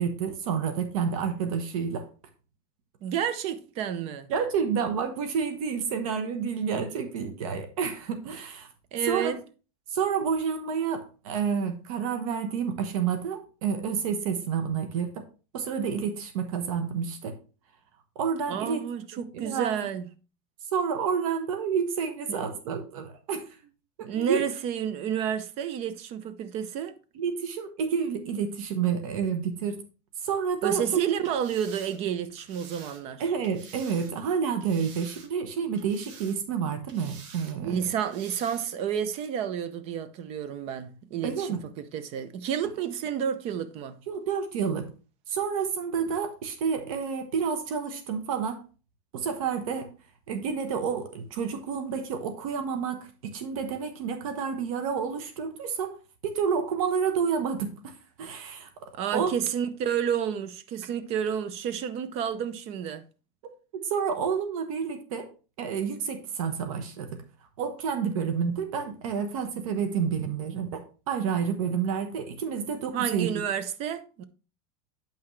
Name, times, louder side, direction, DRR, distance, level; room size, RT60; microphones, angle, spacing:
voice 1, 0.0-2.1 4.3-8.7 9.1-9.4 9.9-15.2 15.5-17.4 18.1-18.8 19.1-19.7 20.7-23.6 24.0-24.4 27.1-29.8 30.2-31.0 33.2-37.9 41.2-41.6 44.1-44.9 45.3-48.6 49.1-49.9 50.3-56.0 56.2-59.3 63.7-65.3 65.6-67.1 67.6-73.4, right 6 dB, 75° right, 1.2 m, -29 dB
voice 2, 3.0-4.3 8.9-9.4 18.5-20.1 22.3-22.5 24.0-27.0 30.6-33.3 37.6-44.0 58.9-63.0 72.9-74.2, right 8 dB, 35° right, 0.6 m, -30 dB
sound 1, 31.2-34.2 34.6-35.5 35.8-36.6 36.9-37.6 38.0-38.7 39.1-39.3, right 6 dB, 60° right, 1.2 m, -49 dB
8.5 x 5.8 x 3.2 m
supercardioid pair, 165°, 18 cm